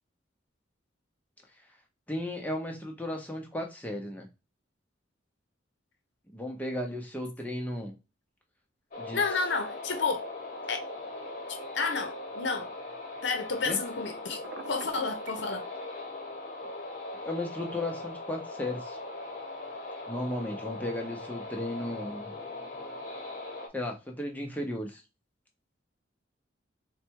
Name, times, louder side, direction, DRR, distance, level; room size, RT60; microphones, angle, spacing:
voice 1, 2.1-4.3 6.3-7.9 9.0-9.2 13.6-13.8 17.2-19.0 20.1-22.3 23.7-25.0, left 1 dB, 10° left, 0.7 m, -35 dB
sound 1, 8.9-23.7, left 2 dB, 45° left, 1.0 m, -40 dB
voice 2, 9.1-10.3 10.7-10.8 11.5-12.7 13.2-14.4 14.7-15.7, left 4 dB, 70° left, 0.7 m, -31 dB
Telephone, 14.4-15.5, right 4 dB, 60° right, 0.5 m, -43 dB
4.0 x 2.3 x 4.5 m
head